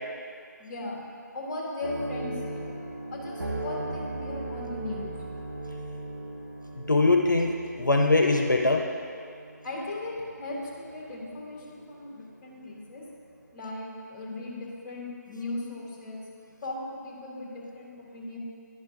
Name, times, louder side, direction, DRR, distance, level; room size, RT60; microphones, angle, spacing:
voice 1, 0.6-1.0 1.3-2.6 3.1-5.1 9.6-13.0 13.5-16.2 16.6-18.4, left 2 dB, 25° left, -3 dB, 1.5 m, -37 dB
sound 1, 1.8-12.3 12.7-12.8 13.3-13.5, right 2 dB, 75° right, 1.1 m, -38 dB
voice 2, 6.7-8.9, left 2 dB, 85° left, 2 dB, 0.6 m, -22 dB
11.0 x 4.4 x 3.5 m, 2.3 s
figure-of-eight pair, 150°, 10 cm